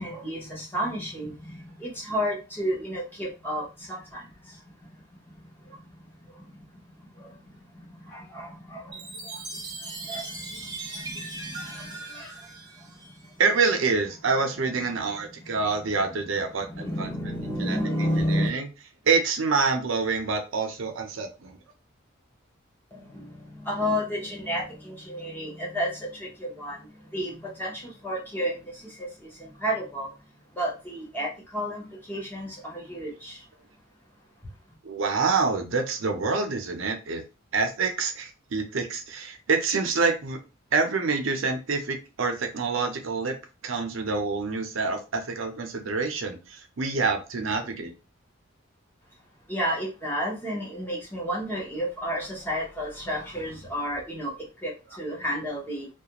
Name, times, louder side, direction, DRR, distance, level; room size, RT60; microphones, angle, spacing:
voice 1, 0.0-4.6 5.4-5.8 6.2-6.7 7.2-7.4 7.7-12.5 12.8-12.9 13.2-13.4 16.6-18.5 22.9-33.4 49.5-55.9, equal, 10° left, -3 dB, 0.8 m, -32 dB
Chime, 8.9-13.5, right 3 dB, 20° right, 0.5 m, -39 dB
voice 2, 13.4-17.1 17.6-17.8 18.3-18.7 19.1-21.6 34.8-37.2 37.5-40.4 40.7-43.3 43.6-47.9, right 4 dB, 75° right, 5 dB, 0.6 m, -26 dB
2.4 x 2.2 x 2.9 m, 0.29 s
head